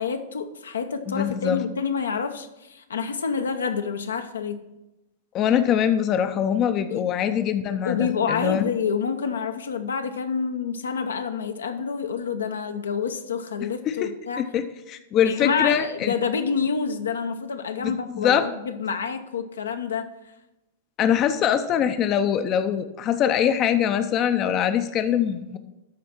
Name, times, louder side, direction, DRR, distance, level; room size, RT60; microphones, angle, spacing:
voice 1, 0.0-4.6 6.9-7.1 7.8-14.5 15.2-20.1, left 6 dB, 75° left, 7 dB, 0.8 m, -28 dB
voice 2, 1.1-1.6 5.3-8.6 13.9-14.1 14.4-16.1 17.8-18.5 21.0-25.6, left 9 dB, 35° left, 9 dB, 0.6 m, -23 dB
12.5 x 4.2 x 5.9 m, 0.98 s
figure-of-eight pair, 100°, 0 cm